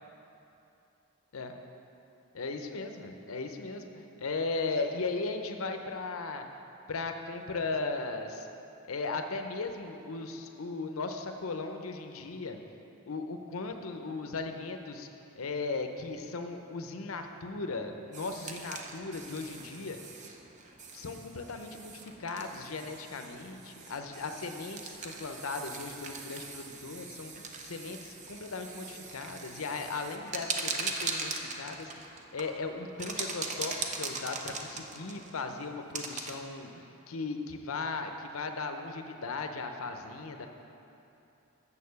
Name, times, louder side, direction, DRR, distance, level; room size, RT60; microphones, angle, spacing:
voice 1, 2.3-6.5 6.9-8.5 8.9-12.6 13.1-15.1 15.4-20.0 20.9-40.5, left 3 dB, 85° left, 6 dB, 0.7 m, -37 dB
sound 1, 18.1-36.4, right 4 dB, 35° right, 0.6 m, -41 dB
7.0 x 6.7 x 6.9 m, 2.8 s
head